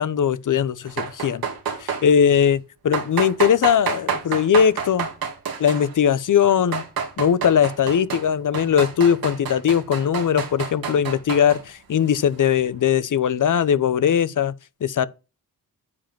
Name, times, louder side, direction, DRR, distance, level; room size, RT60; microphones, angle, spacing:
voice 1, 0.0-1.5 1.8-2.6 2.8-5.1 5.6-6.8 7.2-14.5 14.8-15.1, left 8 dB, 60° left, 0.9 m, -20 dB
sound 1, 0.9-2.1 2.9-6.0 6.5-8.3 8.5-11.6, right 6 dB, 85° right, 2.6 m, -29 dB
9.8 x 5.2 x 5.8 m
cardioid pair, 65°, 35 cm